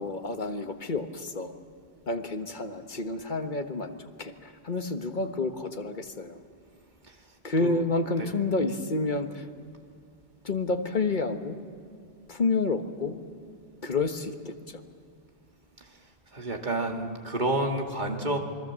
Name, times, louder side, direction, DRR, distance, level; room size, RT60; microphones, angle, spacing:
voice 1, 0.0-1.5 2.1-6.4 7.4-9.5 10.4-11.6 12.3-13.2 13.8-14.8, left 3 dB, 50° left, 7 dB, 1.5 m, -29 dB
voice 2, 16.3-18.4, right 1 dB, 45° right, 3 dB, 2.2 m, -29 dB
27.5 x 21.5 x 7.5 m, 2.3 s
omnidirectional pair, 1.1 m